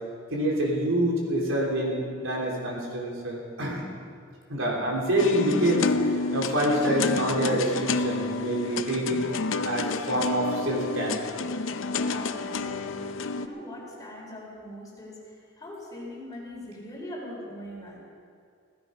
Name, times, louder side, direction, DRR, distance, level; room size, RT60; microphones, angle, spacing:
voice 1, 0.3-3.8 4.5-9.2 9.7-11.2, right 1 dB, 85° right, -2 dB, 3.5 m, -26 dB
sound 1, 5.2-13.5, left 3 dB, 70° left, 0.6 m, -29 dB
voice 2, 11.9-15.2 15.6-18.0, left 1 dB, 20° left, -3 dB, 3.9 m, -41 dB
16.0 x 15.5 x 5.2 m, 2.2 s
head